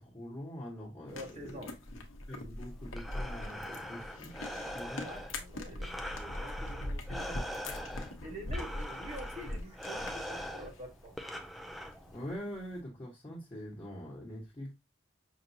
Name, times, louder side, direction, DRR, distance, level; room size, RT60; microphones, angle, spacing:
voice 1, 0.0-1.7 2.3-4.3 4.7-5.1 12.1-14.7, equal, 25° left, 1.4 m, -44 dB
sound 1, 1.1-12.8, left 1 dB, 85° left, 0.9 m, -42 dB
voice 2, 1.1-1.7 5.0-7.9 8.2-11.2, equal, 35° right, 1.0 m, -47 dB
Breathing, 2.7-12.4, equal, ahead, 0.3 m, -43 dB
5.8 x 2.6 x 2.7 m
head